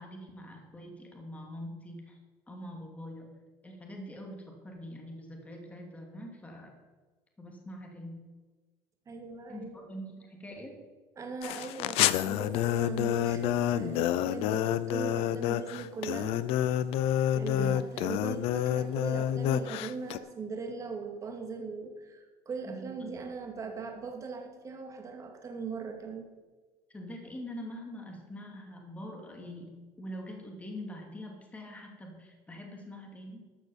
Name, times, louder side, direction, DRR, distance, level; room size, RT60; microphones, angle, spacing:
voice 1, 0.0-2.2 2.5-3.4 3.6-6.8 7.4-8.1 9.5-10.8 17.5-17.8 22.6-23.1 26.9-33.4, equal, 15° left, 1 dB, 2.6 m, -44 dB
voice 2, 9.1-9.8 11.2-16.4 17.3-26.3, right 4 dB, 30° right, 3 dB, 2.3 m, -40 dB
sound 1, 11.4-20.2, left 11 dB, 70° left, 0.6 m, -28 dB
13.5 x 6.3 x 7.1 m, 1.3 s
supercardioid pair, 115°, 10 cm